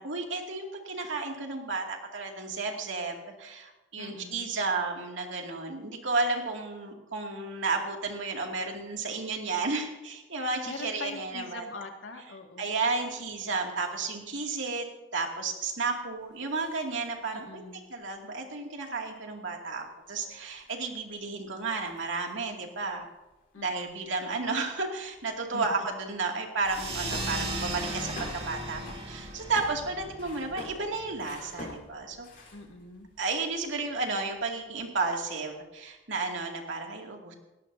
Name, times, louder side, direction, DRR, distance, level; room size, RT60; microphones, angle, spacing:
voice 1, 0.0-11.7 12.6-14.9 15.1-17.6 17.9-23.0 23.6-32.3 33.2-37.3, right 3 dB, 75° right, 1 dB, 2.5 m, -32 dB
voice 2, 4.0-4.5 10.7-12.7 17.3-17.8 23.5-24.0 25.5-25.9 32.5-33.1, left 3 dB, 85° left, 3 dB, 2.0 m, -42 dB
sound 1, 16.1-17.4 18.0-18.1 18.4-18.5 18.8-26.1 26.4-26.5 27.1-33.0 33.3-33.9, left 2 dB, 45° left, 4.1 m, -49 dB
sound 2, 26.6-31.7, right 2 dB, 30° right, 2.5 m, -37 dB
19.5 x 17.0 x 2.8 m, 1.1 s
head